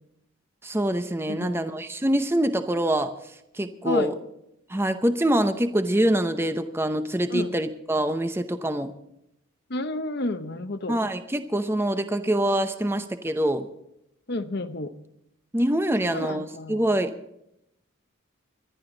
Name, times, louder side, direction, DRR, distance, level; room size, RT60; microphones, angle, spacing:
voice 1, 0.6-3.1 3.5-4.1 4.7-8.9 10.9-13.7 15.5-17.1, right 1 dB, 10° right, 9 dB, 0.7 m, -25 dB
voice 2, 1.3-1.8 3.8-4.1 7.3-7.5 9.7-11.0 14.3-15.0 16.0-16.8, left 2 dB, 50° left, 11 dB, 1.0 m, -31 dB
26.0 x 12.0 x 4.0 m, 0.81 s
head